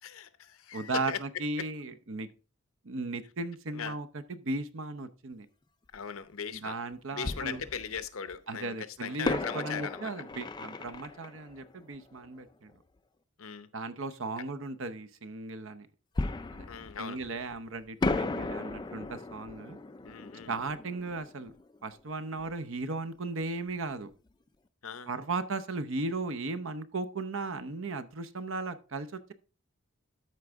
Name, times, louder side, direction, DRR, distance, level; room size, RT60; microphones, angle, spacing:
voice 1, 0.0-1.2 1.6-1.7 3.7-4.0 5.9-6.8 7.1-10.1 13.4-13.7 16.6-17.2 20.0-20.5 24.8-25.1, left 7 dB, 75° left, 0.7 m, -39 dB
voice 2, 0.7-2.3 2.8-5.5 6.5-7.6 8.5-12.7 13.7-15.9 16.5-16.7 17.0-19.8 20.5-21.5 21.8-24.1 25.1-29.3, right 3 dB, 65° right, 0.7 m, -36 dB
Fireworks, 5.9-6.0 7.2-8.4 9.2-12.7 16.2-17.6 18.0-22.6 22.8-22.9 23.4-23.6, left 3 dB, 20° left, 0.3 m, -36 dB
13.0 x 4.6 x 3.5 m
head